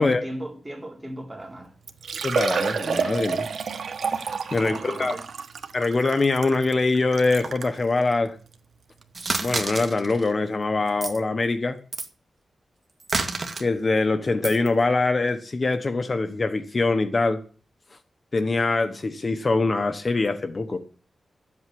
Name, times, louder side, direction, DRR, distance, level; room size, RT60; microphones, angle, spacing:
voice 1, 0.0-1.8 4.6-5.3, right 1 dB, 15° right, 3.6 m, -37 dB
Liquid, 1.4-1.5 1.9-7.8 8.5-8.6 9.0-9.1 10.7-10.8 11.0-11.1, right 5 dB, 75° right, 1.3 m, -29 dB
voice 2, 2.2-3.5 4.1-5.2 5.7-8.3 9.4-11.8 13.6-17.4 18.3-20.8, left 3 dB, 35° left, 1.2 m, -23 dB
sound 1, 9.1-10.3 10.9-11.2 11.9-12.1 13.0-13.6 14.4-14.7, right 3 dB, 40° right, 1.9 m, -29 dB
12.5 x 8.0 x 7.8 m
wide cardioid pair, 110°, 0 cm